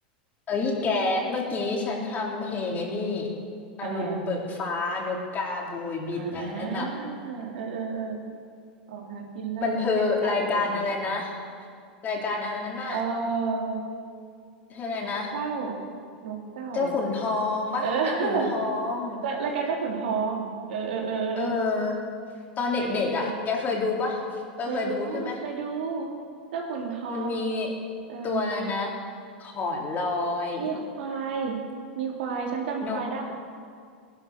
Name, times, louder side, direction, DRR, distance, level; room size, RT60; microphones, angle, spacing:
voice 1, 0.5-3.3 3.8-6.9 9.6-11.4 12.0-13.0 14.7-15.3 16.7-19.2 21.4-21.9 22.6-24.2 24.6-25.4 27.1-27.7 28.2-28.9 29.4-30.7 32.8-33.0, left 3 dB, 35° left, -1 dB, 4.0 m, -28 dB
voice 2, 3.8-4.2 6.2-8.1 8.9-9.8 10.2-10.9 12.9-13.8 15.3-15.7 16.2-17.0 17.8-18.5 19.2-21.5 22.8-23.4 24.7-26.1 26.5-27.4 28.1-28.5 30.6-31.6 32.0-33.2, right 5 dB, 75° right, -1 dB, 3.7 m, -31 dB
18.5 x 11.5 x 6.9 m, 2.2 s
hypercardioid pair, 105°, 5 cm